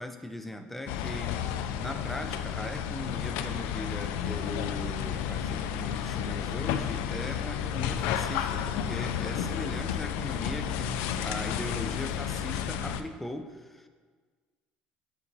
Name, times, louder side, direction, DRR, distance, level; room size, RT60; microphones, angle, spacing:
voice 1, 0.0-1.4 1.8-13.9, left 1 dB, 5° left, 7 dB, 0.4 m, -39 dB
sound 1, 0.9-13.0, left 9 dB, 90° left, 0.3 m, -32 dB
8.1 x 4.0 x 3.0 m, 1.5 s
cardioid pair, 140°, 3 cm